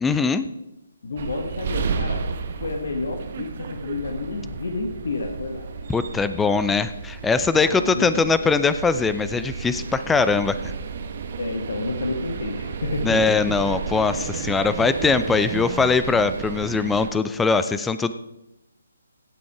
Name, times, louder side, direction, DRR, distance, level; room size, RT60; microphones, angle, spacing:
voice 1, 0.0-0.4 5.9-10.7 13.0-18.1, left 4 dB, 10° left, 12 dB, 0.4 m, -21 dB
voice 2, 1.0-5.9 7.5-8.3 11.4-13.4, left 3 dB, 65° left, 4 dB, 1.3 m, -30 dB
sound 1, 1.2-17.1, right 5 dB, 50° right, 1.1 m, -32 dB
16.0 x 6.2 x 4.7 m, 0.91 s
figure-of-eight pair, 140°, 0 cm